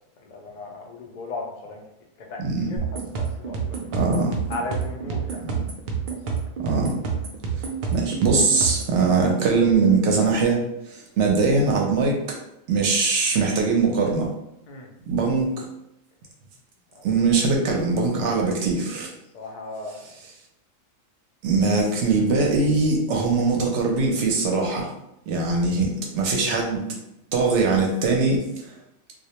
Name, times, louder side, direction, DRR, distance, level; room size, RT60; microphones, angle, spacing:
voice 1, 0.3-1.8 2.3-2.8 3.2-3.8 4.5-5.4 14.7-14.9 16.9-17.1 19.3-20.1 25.3-25.5, left 3 dB, 75° left, 0 dB, 0.4 m, -36 dB
voice 2, 2.4-2.7 3.9-4.3 6.6-7.0 7.9-10.6 10.9-12.2 12.7-14.3 15.1-15.7 17.0-19.1 21.4-24.9 25.3-26.8 27.3-28.4, right 4 dB, 70° right, 0 dB, 0.8 m, -21 dB
sound 1, 2.8-9.0, right 6 dB, 85° right, 0.4 m, -29 dB
2.3 x 2.1 x 2.8 m, 0.83 s
omnidirectional pair, 1.4 m